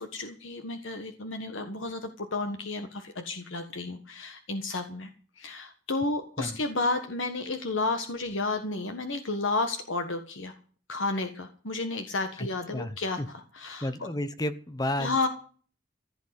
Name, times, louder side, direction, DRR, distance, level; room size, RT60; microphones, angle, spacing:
voice 1, 0.0-5.1 5.4-10.5 10.9-14.1 15.0-15.3, left 3 dB, 90° left, 7 dB, 1.5 m, -32 dB
voice 2, 12.7-13.3 13.8-15.3, left 1 dB, 20° left, 12 dB, 1.0 m, -32 dB
15.5 x 8.4 x 8.3 m, 0.42 s
head